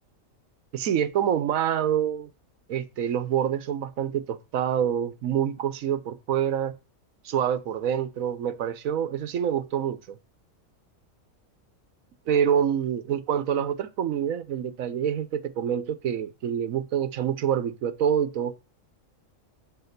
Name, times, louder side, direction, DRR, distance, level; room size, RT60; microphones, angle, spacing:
voice 1, 0.7-2.3 2.7-6.8 7.2-10.2 12.3-18.5, right 9 dB, 80° right, 1.2 m, -26 dB
7.8 x 7.1 x 6.6 m
omnidirectional pair, 1.4 m